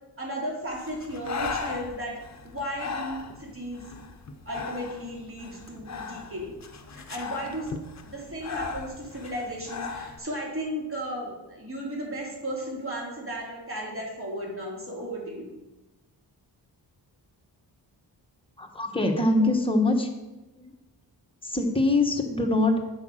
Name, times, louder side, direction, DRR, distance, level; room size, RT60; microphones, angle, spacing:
voice 1, 0.2-2.2 2.4-3.9 4.4-6.5 6.9-7.7 8.1-15.5 19.3-19.4, equal, 30° right, -3 dB, 2.8 m, -35 dB
Breathing, 0.7-10.2, left 5 dB, 40° left, 0.8 m, -38 dB
voice 2, 18.6-20.1 20.5-20.7 21.4-22.9, left 2 dB, 10° left, 2 dB, 1.2 m, -24 dB
8.2 x 5.1 x 6.3 m, 1.0 s
wide cardioid pair, 115°, 42 cm